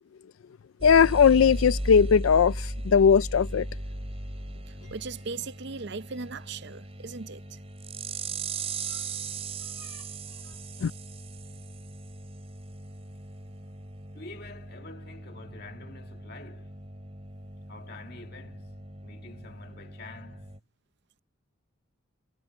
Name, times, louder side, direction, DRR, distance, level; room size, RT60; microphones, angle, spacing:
voice 1, 0.8-3.7 10.8-10.9, left 6 dB, 80° left, 0.4 m, -19 dB
sound 1, 0.8-20.6, right 2 dB, 30° right, 4.8 m, -38 dB
voice 2, 4.7-7.6 11.5-11.6, right 4 dB, 55° right, 0.6 m, -38 dB
voice 3, 14.1-16.7 17.7-20.5, left 3 dB, 50° left, 2.4 m, -47 dB
head